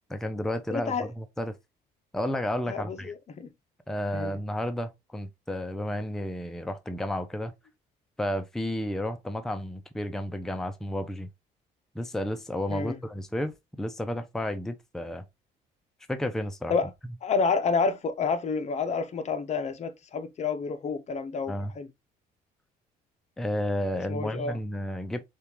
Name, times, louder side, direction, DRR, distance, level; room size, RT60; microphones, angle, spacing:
voice 1, 0.1-1.6 2.1-3.1 3.9-7.5 8.2-11.3 11.9-15.2 16.1-16.7 21.5-21.7 23.4-25.2, left 1 dB, 5° left, 0.5 m, -32 dB
voice 2, 0.7-1.1 2.7-3.5 4.1-4.3 12.7-13.0 16.7-16.9 17.2-21.9 24.1-24.6, left 5 dB, 40° left, 0.7 m, -29 dB
6.6 x 2.4 x 3.0 m
cardioid pair, 110°, 17 cm